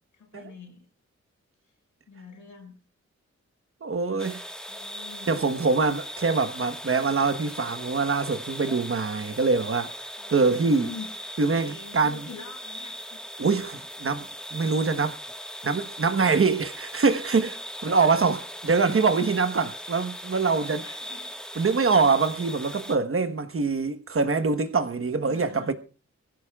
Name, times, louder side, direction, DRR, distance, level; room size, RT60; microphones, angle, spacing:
voice 1, 0.1-0.9 2.1-2.8 4.7-5.4 10.2-11.1 11.5-13.2 17.8-18.5 19.2-19.3 20.5-21.3 25.2-25.7, left 5 dB, 90° left, 6.0 m, -45 dB
voice 2, 3.8-4.4 5.3-10.9 11.4-12.2 13.4-15.2 15.6-18.4 18.6-20.8 21.5-25.7, right 4 dB, 45° right, 1.2 m, -24 dB
sound 1, 4.2-22.9, equal, 5° left, 1.5 m, -39 dB
23.5 x 15.5 x 2.4 m
cardioid pair, 75°, 30 cm